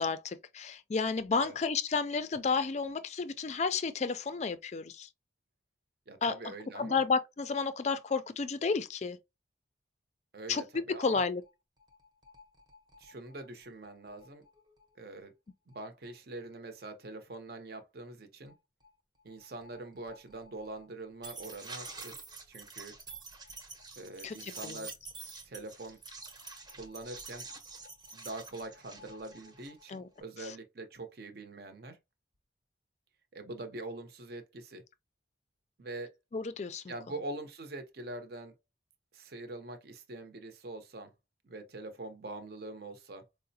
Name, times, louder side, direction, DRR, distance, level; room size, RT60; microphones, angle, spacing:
voice 1, 0.0-5.1 6.2-9.2 10.5-10.6 11.0-11.4 24.2-24.8 29.9-30.1 36.3-36.9, left 4 dB, 35° left, 0.3 m, -32 dB
voice 2, 6.1-7.0 10.3-11.2 13.0-14.4 15.0-15.3 15.7-18.5 19.2-22.1 22.5-23.0 24.0-25.0 25.4-26.0 26.7-27.5 28.1-32.0 33.3-34.8 35.8-36.1 36.9-38.5 39.1-41.1 41.4-43.3, right 2 dB, 55° right, 0.7 m, -44 dB
sound 1, 11.1-11.2 11.5-11.6 11.8-14.9 15.7-15.8 16.0-16.1 16.4-16.5 18.5-18.6 18.8-18.9 19.2-30.2, right 3 dB, 20° right, 0.7 m, -48 dB
4.7 x 2.0 x 2.7 m
head